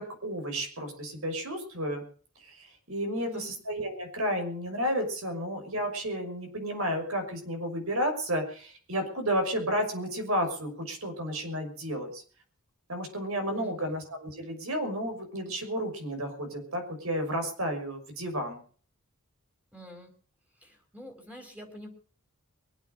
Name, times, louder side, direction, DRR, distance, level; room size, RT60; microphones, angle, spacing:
voice 1, 0.0-2.0 2.9-12.2 12.9-18.6, equal, 75° right, 5 dB, 6.0 m, -32 dB
voice 2, 3.1-3.5 13.5-14.0 19.7-20.1 20.6-21.9, equal, 5° right, 1 dB, 5.0 m, -47 dB
23.5 x 8.9 x 6.7 m, 0.44 s
head